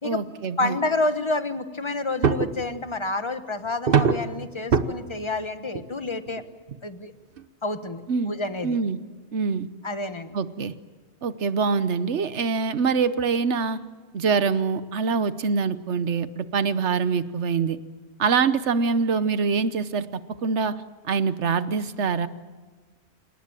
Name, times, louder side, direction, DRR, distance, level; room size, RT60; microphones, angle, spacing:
voice 1, 0.0-0.8 8.1-8.3 8.6-9.0 9.3-9.7 10.3-10.7 11.2-13.8 14.1-17.8 18.2-20.1 20.4-20.8 21.1-22.3, right 5 dB, 85° right, 13 dB, 1.3 m, -24 dB
voice 2, 0.6-6.4 6.8-7.1 7.6-8.8 9.8-10.3, left 2 dB, 25° left, 9 dB, 1.3 m, -29 dB
sound 1, 2.2-2.6 3.9-4.3 4.7-4.9 5.7-5.8 6.3-6.4 6.7-6.8 7.4-7.5, right 6 dB, 55° right, 1.2 m, -21 dB
28.5 x 18.5 x 9.0 m, 1.4 s
omnidirectional pair, 1.1 m